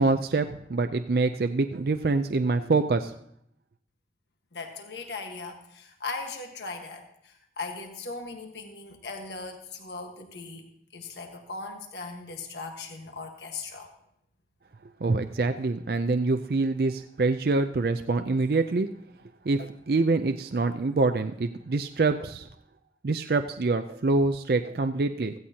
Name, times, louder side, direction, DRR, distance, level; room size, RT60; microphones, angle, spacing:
voice 1, 0.0-3.1 15.0-18.9 19.5-22.5 23.0-25.3, right 3 dB, 55° right, 8 dB, 0.5 m, -25 dB
voice 2, 4.5-10.7 10.9-13.9, left 3 dB, 75° left, 4 dB, 1.4 m, -38 dB
16.0 x 15.5 x 2.8 m, 0.72 s
head